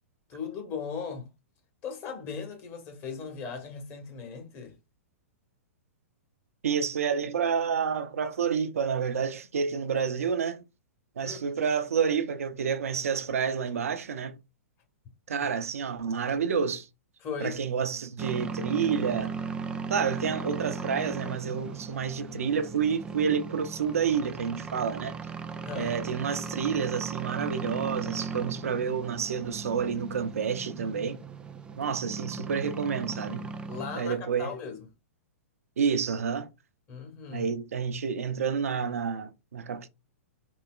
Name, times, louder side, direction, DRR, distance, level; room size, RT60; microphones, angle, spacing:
voice 1, 0.3-1.3 1.8-4.8 11.2-11.5 15.4-15.5 17.2-17.6 25.6-26.0 33.7-34.9 36.9-37.5, left 5 dB, 35° left, 1.2 m, -38 dB
voice 2, 6.6-10.6 11.2-14.4 15.3-16.9 17.4-19.3 19.9-25.2 25.7-31.2 31.8-33.5 34.0-34.5 35.8-36.5 37.3-39.9, right 6 dB, 75° right, 0.5 m, -29 dB
sound 1, 18.2-34.0, right 4 dB, 10° right, 0.4 m, -37 dB
3.9 x 2.8 x 2.3 m
hypercardioid pair, 115°, 8 cm